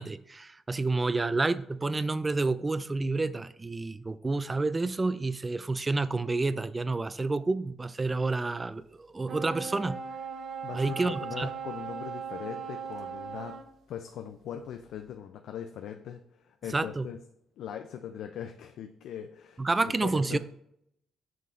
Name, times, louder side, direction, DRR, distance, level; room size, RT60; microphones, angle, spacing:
voice 1, 0.0-10.0 10.7-11.5 16.7-17.1 19.6-20.4, right 3 dB, 25° right, 0.3 m, -29 dB
sound 1, 9.3-13.7, right 6 dB, 60° right, 0.7 m, -38 dB
voice 2, 10.6-13.6 13.9-17.2 17.6-20.4, left 9 dB, 80° left, 0.4 m, -40 dB
7.6 x 5.6 x 2.6 m
cardioid pair, 90°, 0 cm